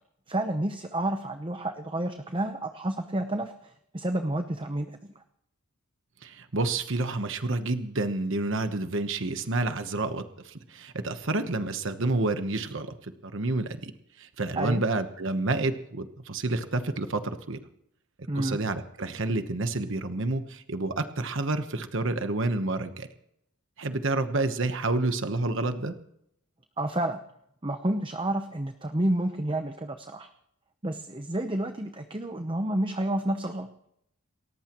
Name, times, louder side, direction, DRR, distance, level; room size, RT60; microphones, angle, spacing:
voice 1, 0.3-5.1 14.5-14.8 18.3-18.6 26.8-27.2 27.6-30.3 30.8-33.7, right 1 dB, 25° right, 7 dB, 0.8 m, -30 dB
voice 2, 6.2-13.9 14.2-17.6 18.3-23.1 23.8-25.9, right 2 dB, 60° right, 8 dB, 1.1 m, -29 dB
29.0 x 14.5 x 3.1 m, 0.75 s
head